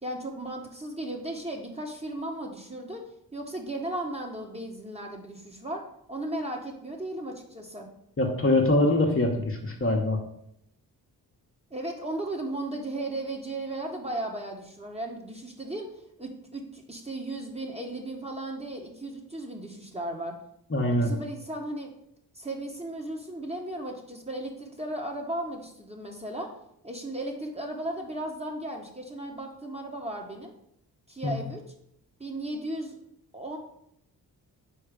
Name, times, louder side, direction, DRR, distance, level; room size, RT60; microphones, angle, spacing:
voice 1, 0.0-3.0 3.3-7.9 11.7-15.9 16.2-20.4 20.9-21.9 22.3-26.5 26.8-30.5 31.1-31.6 32.2-32.9 33.3-33.6, right 1 dB, 15° right, 1 dB, 1.4 m, -35 dB
voice 2, 8.2-10.2 20.7-21.1 31.2-31.4, left 1 dB, 30° left, 1 dB, 1.2 m, -24 dB
4.8 x 4.2 x 5.1 m, 0.74 s
supercardioid pair, 45°, 42 cm